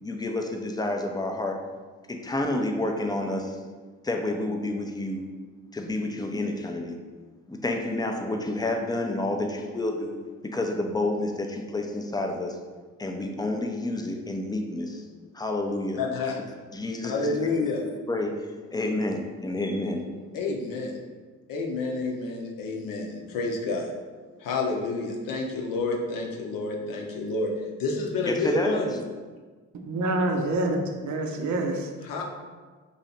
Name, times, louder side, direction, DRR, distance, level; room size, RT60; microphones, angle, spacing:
voice 1, 0.0-1.6 2.1-3.6 4.0-5.3 5.7-7.0 7.5-10.2 10.4-12.6 13.0-15.1 15.3-16.0 16.7-17.4 18.1-20.0 28.3-28.9, left 2 dB, 10° left, 3 dB, 0.5 m, -29 dB
voice 2, 16.0-16.4 17.0-17.8 20.3-21.0 21.5-23.9 24.4-27.5 27.8-28.9 32.0-32.2, left 3 dB, 60° left, 0 dB, 0.8 m, -29 dB
voice 3, 29.8-31.9, right 2 dB, 50° right, 3 dB, 0.6 m, -27 dB
3.2 x 2.7 x 4.1 m, 1.4 s
hypercardioid pair, 50°, 38 cm